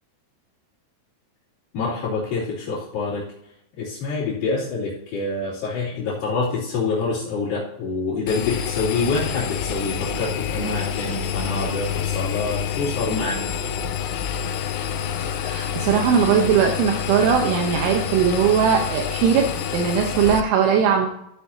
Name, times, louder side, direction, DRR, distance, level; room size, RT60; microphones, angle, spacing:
voice 1, 1.7-3.2 3.8-13.4, left 3 dB, 50° left, -11 dB, 3.9 m, -26 dB
Engine, 8.3-20.4, left 8 dB, 90° left, 3.3 m, -27 dB
voice 2, 15.4-21.1, right 7 dB, 80° right, 2 dB, 3.3 m, -19 dB
14.0 x 8.4 x 2.8 m, 0.77 s
omnidirectional pair, 5.7 m